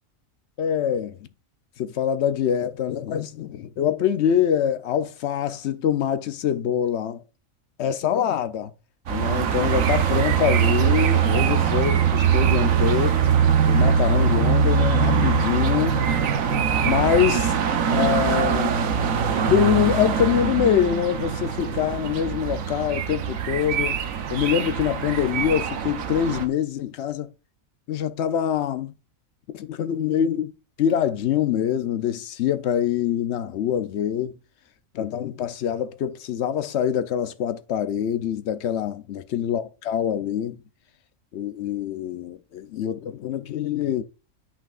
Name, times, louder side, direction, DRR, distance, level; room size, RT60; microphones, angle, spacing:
voice 1, 0.6-1.3 1.8-7.2 7.8-8.7 9.1-13.2 13.7-16.0 16.8-17.6 17.9-18.8 19.5-24.0 24.3-27.3 27.9-28.9 29.5-30.5 30.8-34.4 34.9-40.6 41.3-44.0, left 9 dB, 65° left, 0.8 m, -24 dB
sound 1, 9.1-26.4, right 7 dB, 75° right, 1.2 m, -22 dB
9.8 x 5.9 x 2.4 m
omnidirectional pair, 1.4 m